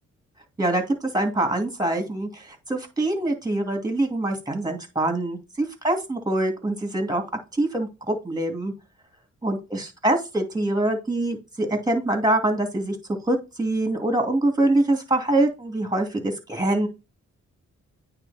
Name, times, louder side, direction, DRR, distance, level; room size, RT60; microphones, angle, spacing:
voice 1, 1.1-7.2 7.5-8.7 9.4-13.0 13.3-16.9, right 1 dB, 15° right, 4 dB, 2.4 m, -24 dB
9.1 x 3.3 x 4.2 m, 0.28 s
cardioid pair, 80°, 29 cm